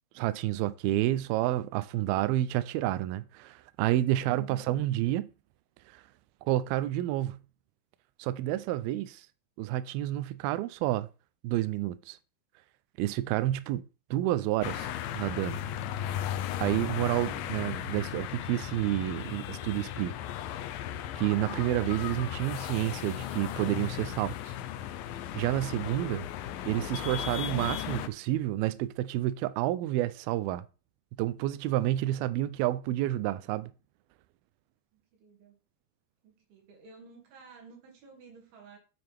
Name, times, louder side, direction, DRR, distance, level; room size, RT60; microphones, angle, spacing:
voice 1, 0.2-5.3 5.9-6.0 6.4-7.4 8.2-9.3 9.6-11.1 11.4-12.2 13.0-15.6 16.6-20.2 21.2-24.5 25.3-26.3 26.7-30.6 31.2-33.7, right 14 dB, 90° right, 2.1 m, -29 dB
sound 1, 14.6-28.1, left 11 dB, 85° left, 2.0 m, -36 dB
voice 2, 34.9-35.6 36.2-38.8, right 4 dB, 65° right, 4.1 m, -54 dB
9.5 x 7.7 x 3.5 m
omnidirectional pair, 5.0 m